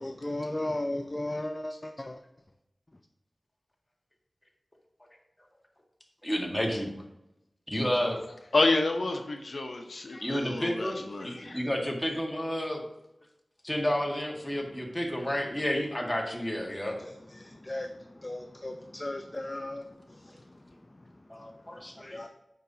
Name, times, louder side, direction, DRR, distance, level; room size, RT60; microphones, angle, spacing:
voice 1, 0.0-2.2 14.5-14.6 17.0-21.0 21.4-22.3, left 1 dB, 30° left, 5 dB, 0.5 m, -37 dB
voice 2, 6.2-6.9 7.7-8.2 10.2-12.8 13.6-17.0 21.3-22.2, equal, 15° left, 0 dB, 1.6 m, -31 dB
voice 3, 8.5-11.6, left 2 dB, 70° left, 4 dB, 0.7 m, -29 dB
9.0 x 5.7 x 2.8 m, 0.86 s
wide cardioid pair, 60°, 0 cm